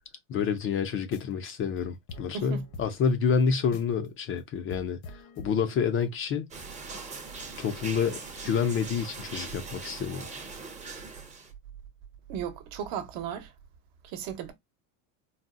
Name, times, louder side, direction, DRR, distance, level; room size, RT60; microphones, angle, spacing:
voice 1, 0.3-6.5 7.6-10.3, left 6 dB, 30° left, 0.4 m, -28 dB
sound 1, 1.0-1.5 1.8-1.9 2.1-4.1 4.4-4.5 4.7-6.1, left 3 dB, 70° left, 1.0 m, -46 dB
voice 2, 2.3-2.6 12.3-13.5 14.0-14.5, right 8 dB, 60° right, 0.9 m, -35 dB
Eau gouttant de loin, 6.5-11.5, right 4 dB, 15° right, 0.6 m, -41 dB
3.9 x 2.0 x 2.4 m
supercardioid pair, 125°, 41 cm